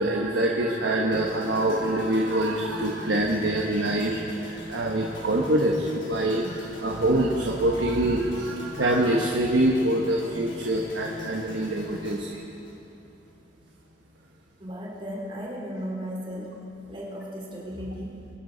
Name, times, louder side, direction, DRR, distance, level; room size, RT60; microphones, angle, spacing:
voice 1, 0.0-12.4, right 1 dB, 80° right, -1 dB, 1.1 m, -25 dB
sound 1, 1.1-13.3 13.6-13.9, left 1 dB, 90° left, 3.4 m, -42 dB
voice 2, 14.6-16.5 16.9-18.2, equal, 30° right, -3 dB, 2.9 m, -35 dB
24.0 x 11.0 x 4.0 m, 2.8 s
head